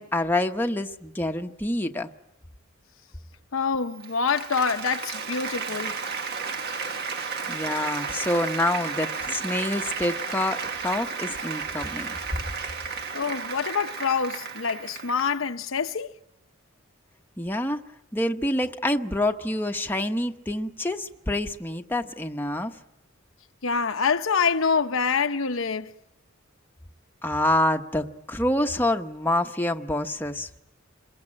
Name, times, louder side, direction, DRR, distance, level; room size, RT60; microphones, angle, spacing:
voice 1, 0.0-2.1 7.5-12.4 17.4-17.8 18.1-22.7 27.2-30.6, left 1 dB, 10° left, 1.0 m, -27 dB
voice 2, 3.5-6.0 13.1-16.1 23.6-25.9, left 5 dB, 75° left, 0.9 m, -26 dB
Applause, 3.9-15.4, right 5 dB, 55° right, 1.5 m, -33 dB
27.5 x 22.0 x 8.8 m
head